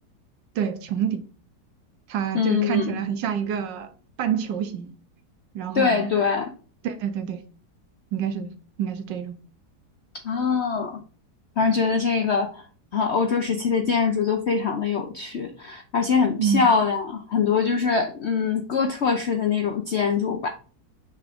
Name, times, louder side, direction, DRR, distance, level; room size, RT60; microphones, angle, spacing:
voice 1, 0.5-1.2 2.1-3.9 4.2-4.9 5.5-6.1 6.8-7.4 8.1-8.5 8.8-9.4 16.4-16.7, right 8 dB, 90° right, 1.5 m, -27 dB
voice 2, 2.3-3.0 5.7-6.5 10.2-11.0 11.6-12.6 12.9-20.5, left 5 dB, 60° left, 0.7 m, -23 dB
5.8 x 3.6 x 5.0 m
omnidirectional pair, 1.9 m